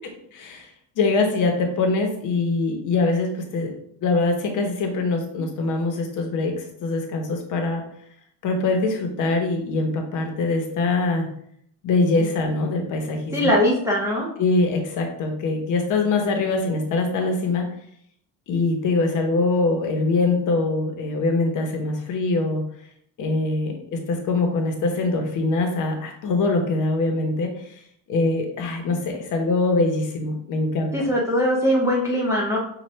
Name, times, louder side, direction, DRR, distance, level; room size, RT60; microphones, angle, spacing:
voice 1, 0.3-0.7 1.0-3.7 4.0-7.8 8.4-11.3 11.8-13.5 14.4-17.7 18.5-22.6 23.2-27.8 28.1-31.1, left 3 dB, 50° left, 3 dB, 0.9 m, -23 dB
voice 2, 13.3-14.3 30.9-32.6, equal, 10° right, -4 dB, 0.5 m, -21 dB
5.8 x 2.4 x 3.1 m, 0.68 s
cardioid pair, 165°, 38 cm